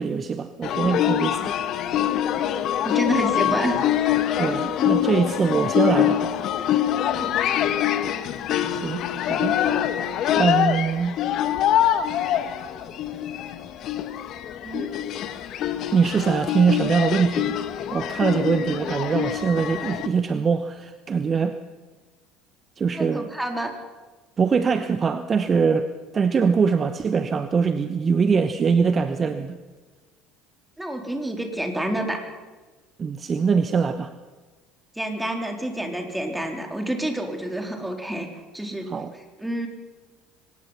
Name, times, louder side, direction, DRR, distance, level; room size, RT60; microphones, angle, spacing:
voice 1, 0.0-1.5 4.4-6.2 8.7-9.6 10.4-11.2 15.9-17.6 17.9-21.6 22.8-23.3 24.4-29.6 33.0-34.1 38.9-39.1, right 5 dB, 30° right, 11 dB, 1.0 m, -23 dB
sound 1, 0.6-20.1, left 11 dB, 50° left, 1.5 m, -24 dB
voice 2, 2.8-3.8 7.1-7.3 14.6-14.9 22.9-23.7 30.8-32.3 35.0-38.3 38.5-38.9 39.4-39.7, right 1 dB, 5° right, 3 dB, 3.9 m, -28 dB
23.5 x 19.5 x 5.8 m, 1.3 s
figure-of-eight pair, 65°, 0 cm